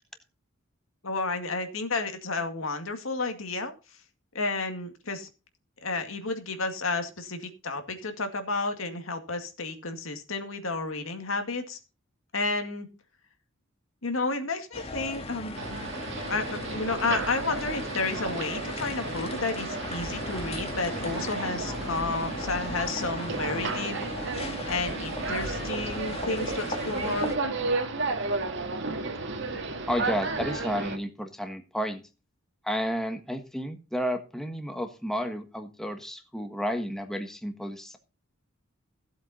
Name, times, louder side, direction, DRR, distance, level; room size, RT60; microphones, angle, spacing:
voice 1, 1.0-3.7 4.3-5.3 5.8-11.8 12.3-12.9 14.0-15.9 16.3-24.0 24.7-27.3, left 3 dB, 85° left, 6 dB, 2.1 m, -31 dB
sound 1, 14.7-27.4, left 2 dB, 30° left, 1.9 m, -37 dB
sound 2, 15.6-31.0, right 3 dB, 60° right, 2.0 m, -33 dB
voice 2, 29.9-32.0 32.6-38.0, equal, ahead, 6 dB, 1.4 m, -32 dB
15.5 x 8.0 x 4.2 m, 0.32 s
head